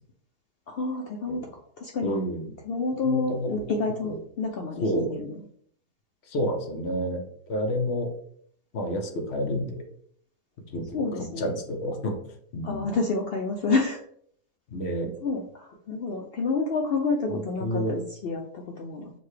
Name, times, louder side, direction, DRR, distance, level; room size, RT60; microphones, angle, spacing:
voice 1, 0.7-1.5 1.8-2.1 2.6-5.4 6.8-7.0 10.9-11.5 12.6-14.0 15.2-19.1, left 3 dB, 70° left, 1 dB, 0.5 m, -29 dB
voice 2, 2.0-2.5 3.0-3.6 4.8-5.1 6.3-7.2 7.5-8.1 8.7-9.8 10.7-10.9 11.4-12.2 12.5-12.9 14.7-15.1 17.3-17.9, equal, 55° left, 3 dB, 1.0 m, -29 dB
6.4 x 2.2 x 3.2 m, 0.63 s
omnidirectional pair, 1.6 m